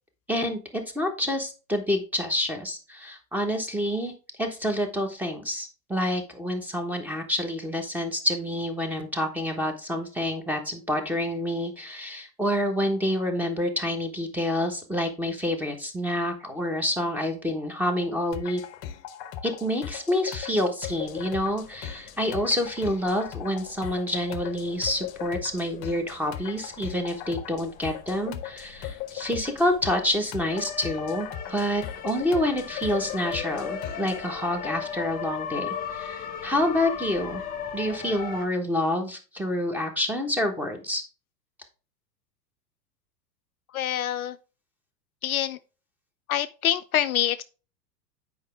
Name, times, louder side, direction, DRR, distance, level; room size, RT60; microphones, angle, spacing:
voice 1, 0.3-4.1 4.4-18.6 19.4-37.4 37.7-41.0, left 1 dB, 5° right, 1.1 m, -28 dB
sound 1, 18.3-34.2, left 10 dB, 35° left, 0.8 m, -39 dB
sound 2, 20.9-38.5, left 7 dB, 15° left, 1.2 m, -39 dB
voice 2, 43.7-44.4 45.2-45.6 46.3-47.4, left 11 dB, 60° left, 0.5 m, -26 dB
8.8 x 5.0 x 3.4 m
figure-of-eight pair, 95°, 50 cm